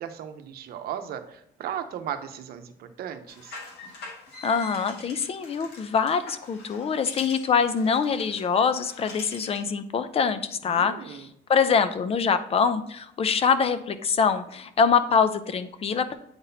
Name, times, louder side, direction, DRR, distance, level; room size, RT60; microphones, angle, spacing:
voice 1, 0.0-3.6 10.6-11.2, right 9 dB, 65° right, 8 dB, 0.8 m, -36 dB
sound 1, 3.3-9.7, left 2 dB, 75° left, 1.6 m, -44 dB
voice 2, 4.4-16.1, left 6 dB, 35° left, 12 dB, 0.6 m, -24 dB
8.6 x 3.9 x 2.7 m, 0.78 s
cardioid pair, 110°, 17 cm